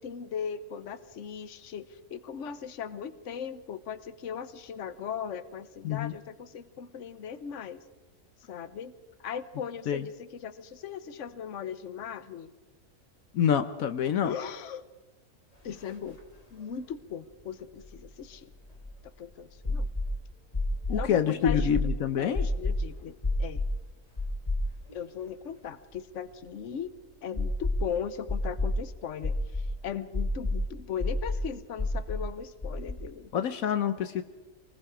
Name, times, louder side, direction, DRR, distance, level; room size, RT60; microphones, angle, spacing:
voice 1, 0.0-7.8 8.5-8.9 9.2-12.5 14.2-14.9 15.6-16.2 16.5-18.5 19.2-19.9 20.9-21.7 22.2-23.6 24.9-26.9 27.2-33.3, left 7 dB, 60° left, 13 dB, 1.3 m, -38 dB
voice 2, 13.3-14.3 20.9-22.4 33.3-34.2, left 8 dB, 75° left, 10 dB, 1.2 m, -27 dB
sound 1, 15.9-16.0 16.2-16.3 17.8-19.1 19.6-20.1 20.5-21.0 21.5-21.9 22.3-22.8 23.2-23.7 24.2-24.9 25.3-25.4 27.4-27.9 28.3-28.8 29.2-29.7 30.1-30.6 31.0-31.4 31.8-32.2 32.6-32.9, left 2 dB, 25° left, 2.5 m, -29 dB
26.5 x 20.5 x 4.9 m, 1.2 s
omnidirectional pair, 1.5 m